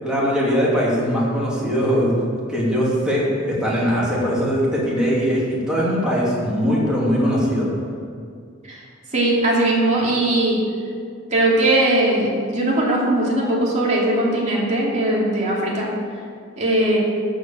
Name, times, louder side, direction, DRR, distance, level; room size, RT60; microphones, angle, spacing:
voice 1, 0.0-2.2 2.5-7.7, equal, 5° right, -7 dB, 2.8 m, -20 dB
voice 2, 9.1-10.6 11.3-15.9 16.6-17.0, right 1 dB, 35° right, -5 dB, 2.7 m, -19 dB
13.0 x 5.2 x 7.5 m, 2.2 s
head